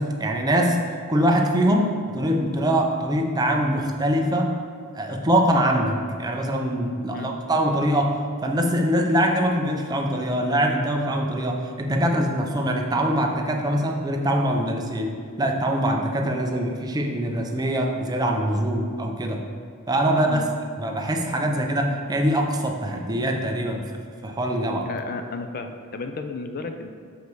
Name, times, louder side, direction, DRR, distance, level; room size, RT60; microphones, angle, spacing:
voice 1, 0.0-4.6 4.9-19.5 19.9-20.5 20.8-23.8 24.2-24.9, right 1 dB, 15° right, 2 dB, 0.6 m, -23 dB
voice 2, 24.9-26.9, left 4 dB, 40° left, 6 dB, 0.4 m, -33 dB
6.8 x 5.0 x 4.6 m, 2.3 s
head